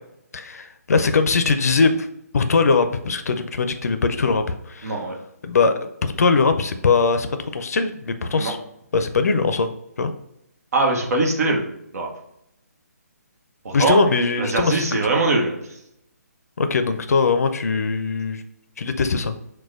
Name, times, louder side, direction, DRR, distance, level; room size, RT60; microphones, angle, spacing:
voice 1, 0.3-2.1 2.3-5.0 5.4-5.7 6.0-8.6 8.9-9.7 10.0-10.1 13.7-15.0 16.6-18.4 18.8-19.3, left 4 dB, 65° left, 8 dB, 0.4 m, -21 dB
voice 2, 4.8-5.2 8.3-8.5 10.7-11.6 11.9-12.1 13.6-14.0 14.4-15.5, right 2 dB, 60° right, 0 dB, 1.0 m, -21 dB
6.1 x 2.2 x 2.4 m, 0.80 s
hypercardioid pair, 155°, 9 cm